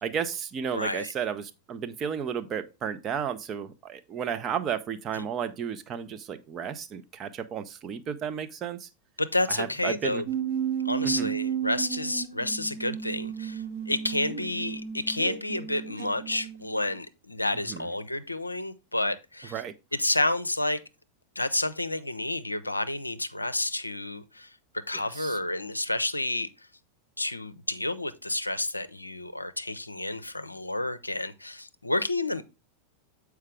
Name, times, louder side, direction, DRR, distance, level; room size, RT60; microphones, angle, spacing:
voice 1, 0.0-8.9 9.5-10.2 11.0-11.3 17.7-17.9 19.5-19.7 25.1-25.4, right 7 dB, 30° right, 0.6 m, -33 dB
voice 2, 0.7-1.1 5.2-5.3 9.2-10.3 10.8-19.5 19.9-20.8 21.4-26.5 27.2-32.4, left 2 dB, 85° left, 0.5 m, -30 dB
sound 1, 10.3-16.9, right 8 dB, 60° right, 1.2 m, -33 dB
7.4 x 4.7 x 3.3 m
figure-of-eight pair, 90°, 0 cm